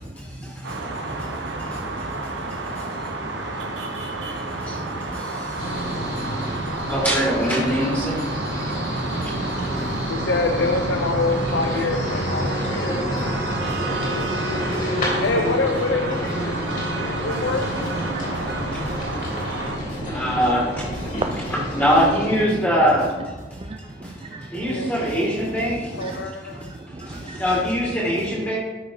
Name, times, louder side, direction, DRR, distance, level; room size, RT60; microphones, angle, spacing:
voice 1, 0.2-1.9 2.2-3.1 4.3-10.1 11.9-12.0 13.3-13.4 13.7-13.8 14.2-14.3 18.3-18.4 18.7-19.0 19.9-21.2 21.5-23.1 23.5-26.2 26.5-26.6 26.9-28.6, equal, 10° left, -5 dB, 2.0 m, -25 dB
sound 1, 0.6-19.8, right 2 dB, 75° right, 1.1 m, -31 dB
voice 2, 0.8-2.7 3.2-5.2 5.8-6.9 8.3-9.9 12.9-13.0 13.6-14.3 14.5-15.0 16.5-16.8 17.3-20.4 21.0-21.5 23.5-24.9 25.9-27.4, right 2 dB, 30° right, 5 dB, 0.3 m, -38 dB
sound 2, 5.6-22.4, equal, 40° left, 3.1 m, -29 dB
voice 3, 10.1-13.0 15.2-17.7 24.7-25.3 26.0-26.5, left 3 dB, 80° left, 4 dB, 0.6 m, -26 dB
13.0 x 6.0 x 3.8 m, 1.3 s
head